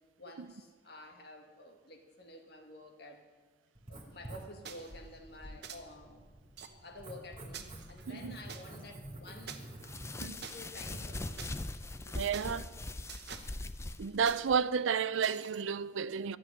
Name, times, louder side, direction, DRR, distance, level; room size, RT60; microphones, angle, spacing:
voice 1, 0.2-3.3 3.9-6.3 6.7-9.6 10.0-11.5 12.3-12.7, left 1 dB, 55° left, 1.9 m, -51 dB
Writing, 3.7-11.4, right 1 dB, 30° right, 2.2 m, -49 dB
sound 1, 4.6-4.9 5.6-5.8 6.6-6.7 7.5-8.6 9.5-9.6 10.4-10.5 11.4-11.5 12.3-12.5 13.1-13.5 14.2-14.4 15.2-15.6, right 7 dB, 55° right, 1.1 m, -46 dB
sound 2, 9.8-14.6, left 2 dB, 15° left, 0.4 m, -41 dB
voice 2, 12.1-12.6 14.0-16.4, right 6 dB, 85° right, 0.4 m, -31 dB
13.0 x 8.0 x 9.9 m
head